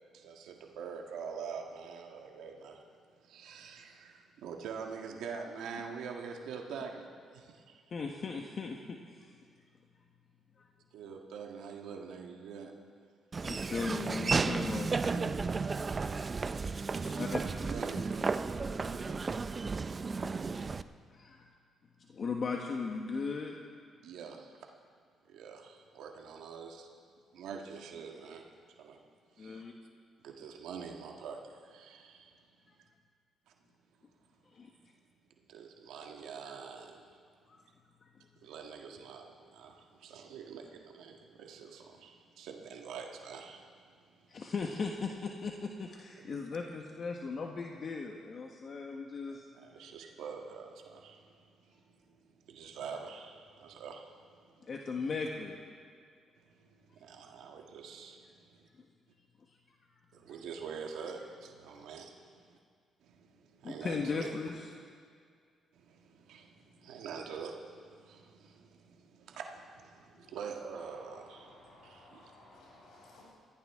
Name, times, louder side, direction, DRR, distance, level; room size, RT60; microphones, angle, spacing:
voice 1, 0.1-2.8 3.2-7.6 10.9-12.7 16.7-18.1 24.0-24.7 25.3-26.9 27.3-28.5 28.8-29.0 29.3-29.6 30.2-32.4 33.5-33.6 35.5-37.2 38.4-43.7 43.9-44.5 46.2-46.6 49.3-54.7 56.4-58.7 60.1-62.6 63.0-64.3 65.7-72.3, right 6 dB, 85° right, 2 dB, 1.6 m, -46 dB
voice 2, 7.9-9.4 13.4-15.6 16.1-16.3 16.9-17.4 18.8-19.4 21.1-21.4 22.1-23.6 29.4-29.7 34.5-34.7 37.5-37.6 38.0-38.1 44.3-49.4 54.7-55.6 61.8-61.9 63.6-64.6 70.2-70.3, left 4 dB, 50° left, 1 dB, 1.2 m, -38 dB
Laughter / Walk footsteps, 13.3-20.8, right 4 dB, 35° right, 0.5 m, -33 dB
voice 3, 70.7-73.2, left 2 dB, 80° left, -5 dB, 5.0 m, -57 dB
21.0 x 15.0 x 3.7 m, 2.1 s
cardioid pair, 90°, 0 cm